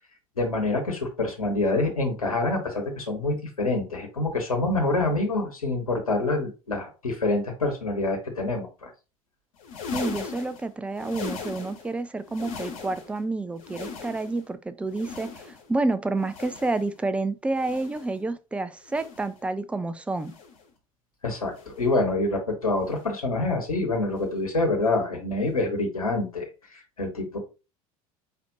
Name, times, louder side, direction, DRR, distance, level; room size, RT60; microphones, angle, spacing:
voice 1, 0.4-8.9 21.2-27.4, left 2 dB, 85° left, 1.2 m, -26 dB
sound 1, 9.5-12.0 12.2-13.2 13.5-14.5 14.9-15.8 16.2-17.0 17.5-18.2 18.8-19.4 20.1-20.7 21.5-21.9 22.8-23.1 24.1-24.3 25.5-25.6, left 5 dB, 65° left, 1.4 m, -39 dB
voice 2, 9.9-20.3, right 2 dB, 5° right, 0.4 m, -29 dB
4.2 x 4.2 x 2.7 m
figure-of-eight pair, 75°, 18 cm